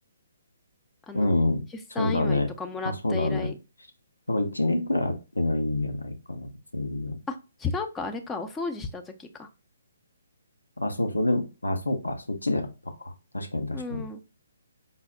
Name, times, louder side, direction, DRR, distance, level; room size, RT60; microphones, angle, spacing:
voice 1, 1.1-1.7 2.0-2.5 2.8-3.5 4.3-7.2 10.8-14.1, left 2 dB, 80° left, 6 dB, 0.7 m, -27 dB
voice 2, 1.9-3.5 7.3-9.5 13.7-14.2, left 4 dB, 10° left, 5 dB, 0.5 m, -34 dB
5.5 x 2.0 x 3.8 m, 0.29 s
figure-of-eight pair, 135°, 0 cm